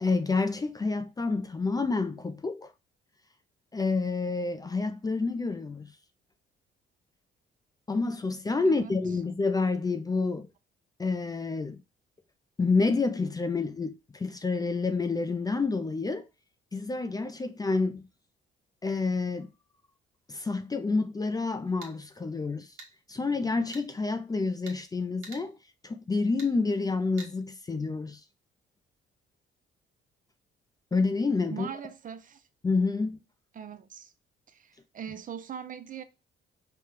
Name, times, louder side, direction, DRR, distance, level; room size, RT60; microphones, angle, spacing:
voice 1, 0.0-2.7 3.7-5.9 7.9-10.5 11.0-11.8 12.6-16.3 16.7-18.0 18.8-19.5 20.3-22.7 23.1-25.6 25.8-28.2 30.9-31.7 32.6-33.2, left 3 dB, 20° left, 0.4 m, -28 dB
sound 1, 21.6-21.9 22.8-22.9 23.7-23.9 24.7-24.8 25.2-25.4 26.4-26.5 27.2-27.3, right 3 dB, 80° right, 1.3 m, -45 dB
voice 2, 31.5-32.4 33.5-34.1 34.5-36.0, right 8 dB, 40° right, 0.5 m, -41 dB
4.9 x 2.2 x 2.9 m
cardioid pair, 90°, 20 cm